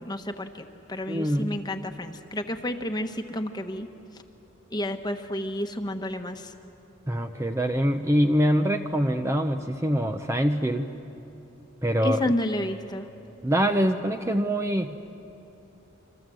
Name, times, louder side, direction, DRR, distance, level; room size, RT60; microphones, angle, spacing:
voice 1, 0.0-3.9 4.7-6.5 12.0-13.1, left 1 dB, 20° left, 6 dB, 1.2 m, -31 dB
voice 2, 1.1-1.6 7.1-10.9 11.8-12.3 13.4-15.0, equal, 15° right, 6 dB, 0.7 m, -24 dB
27.0 x 25.5 x 7.7 m, 2.8 s
head